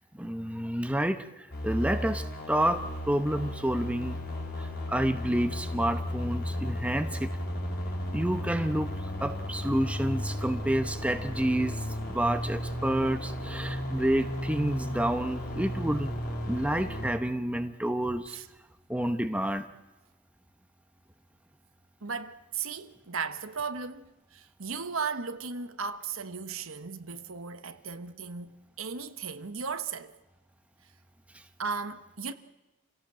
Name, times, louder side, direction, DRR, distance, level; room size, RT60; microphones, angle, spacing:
voice 1, 0.1-4.2 4.6-7.3 8.1-8.9 9.2-16.1 16.5-18.4 18.9-19.7 31.3-31.4, right 1 dB, 5° right, 1.0 m, -29 dB
sound 1, 1.5-17.1, left 1 dB, 45° left, 4.8 m, -34 dB
voice 2, 22.0-28.5 28.8-30.1 31.6-32.3, right 5 dB, 85° right, 1.3 m, -36 dB
28.0 x 17.0 x 7.6 m
head